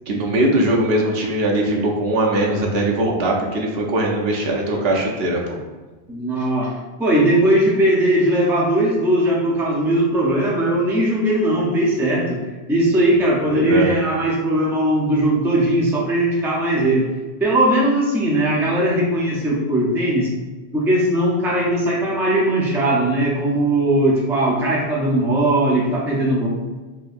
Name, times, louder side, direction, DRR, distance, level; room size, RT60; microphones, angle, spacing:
voice 1, 0.1-5.6 13.5-13.9, right 1 dB, 65° right, -1 dB, 0.8 m, -20 dB
voice 2, 6.1-12.4 12.7-17.1 17.4-20.3 20.7-26.5, right 1 dB, 5° right, -4 dB, 0.4 m, -19 dB
4.0 x 2.7 x 2.5 m, 1.3 s
omnidirectional pair, 1.1 m